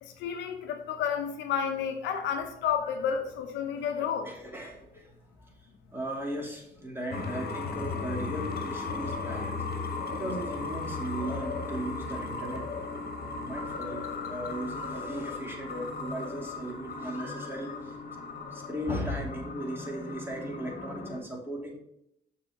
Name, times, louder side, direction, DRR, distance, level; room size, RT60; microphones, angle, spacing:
voice 1, 0.0-4.3, left 7 dB, 85° left, 5 dB, 0.9 m, -31 dB
voice 2, 3.8-5.0 5.4-5.5 5.9-9.6 10.1-12.6 13.1-17.9 18.5-21.7, right 1 dB, 10° right, -1 dB, 2.8 m, -37 dB
sound 1, 7.1-21.2, left 4 dB, 55° left, 1.4 m, -36 dB
6.5 x 4.2 x 6.2 m, 0.79 s
supercardioid pair, 55°, 18 cm